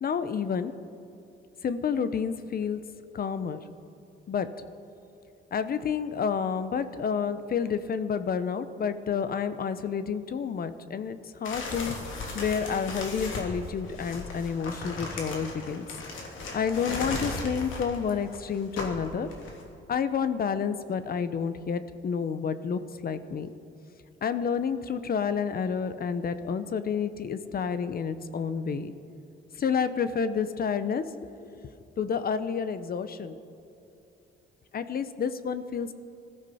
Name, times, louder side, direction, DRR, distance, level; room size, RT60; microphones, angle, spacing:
voice 1, 0.0-0.7 1.6-2.8 3.1-3.6 4.3-4.5 5.5-15.9 16.5-19.3 19.9-23.5 24.2-28.9 29.5-31.0 31.4-31.6 32.0-33.4 34.7-35.9, left 6 dB, 50° left, 12 dB, 0.9 m, -29 dB
sound 1, 11.5-19.6, left 3 dB, 80° left, 2.9 m, -36 dB
20.5 x 14.0 x 4.3 m, 2.7 s
cardioid pair, 90°, 20 cm